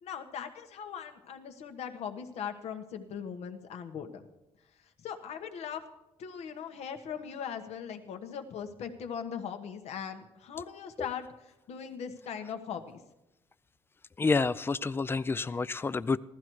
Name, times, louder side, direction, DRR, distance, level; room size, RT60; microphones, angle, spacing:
voice 1, 0.0-4.2 5.0-5.8 6.2-11.3 11.7-13.0, left 7 dB, 75° left, 7 dB, 1.3 m, -39 dB
voice 2, 14.2-16.2, left 4 dB, 20° left, 16 dB, 0.5 m, -29 dB
15.0 x 13.0 x 4.7 m, 0.97 s
cardioid pair, 85°, 11 cm